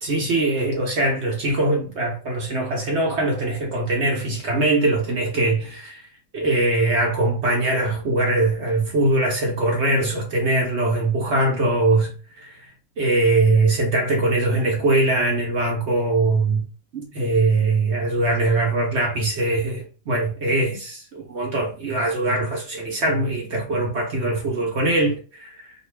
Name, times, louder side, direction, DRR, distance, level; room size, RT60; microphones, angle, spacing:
voice 1, 0.0-6.1 6.3-16.7 16.9-25.7, right 2 dB, 55° right, 0.8 m, -22 dB
2.4 x 2.4 x 3.2 m
omnidirectional pair, 1.8 m